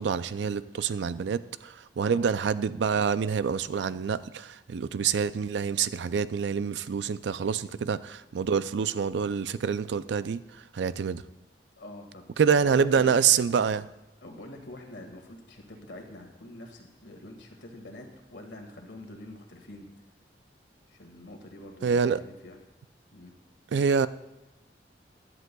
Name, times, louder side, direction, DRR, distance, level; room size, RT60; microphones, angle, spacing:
voice 1, 0.0-10.4 10.7-11.2 12.4-13.9 21.8-22.2 23.7-24.1, right 6 dB, 80° right, 0.4 m, -26 dB
voice 2, 11.8-13.1 14.2-19.9 20.9-22.6 23.1-23.3, left 1 dB, 85° left, 1.8 m, -46 dB
15.5 x 11.0 x 2.3 m
head